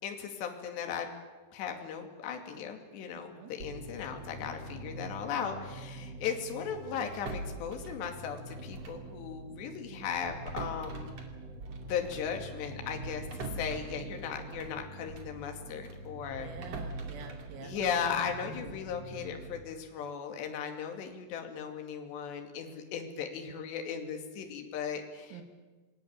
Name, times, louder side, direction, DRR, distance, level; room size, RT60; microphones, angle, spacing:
voice 1, 0.0-1.1 1.5-11.1 11.8-13.3 13.5-16.5 17.6-25.4, left 7 dB, 60° left, 4 dB, 4.4 m, -37 dB
sound 1, 3.6-19.6, right 1 dB, 65° right, 1.6 m, -46 dB
sound 2, 7.1-9.1 9.4-9.6 10.2-15.4 15.8-18.9, right 2 dB, 40° right, 2.6 m, -44 dB
voice 2, 16.4-17.8 18.4-18.8 25.3-25.4, right 5 dB, 85° right, 6 dB, 4.9 m, -46 dB
28.0 x 20.0 x 8.9 m, 1.3 s
omnidirectional pair, 5.9 m